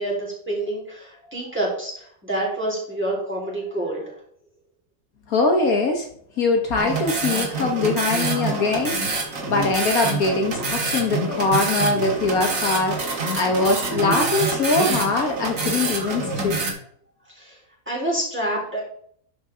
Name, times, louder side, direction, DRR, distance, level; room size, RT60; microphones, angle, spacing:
voice 1, 0.0-4.2 17.3-17.6 17.9-18.8, right 1 dB, 5° right, -5 dB, 4.0 m, -27 dB
voice 2, 5.3-6.1 6.4-16.6, left 3 dB, 65° left, 3 dB, 1.6 m, -22 dB
sound 1, 6.8-16.7, right 3 dB, 60° right, 2.0 m, -26 dB
12.5 x 5.6 x 3.7 m, 0.62 s
omnidirectional pair, 1.6 m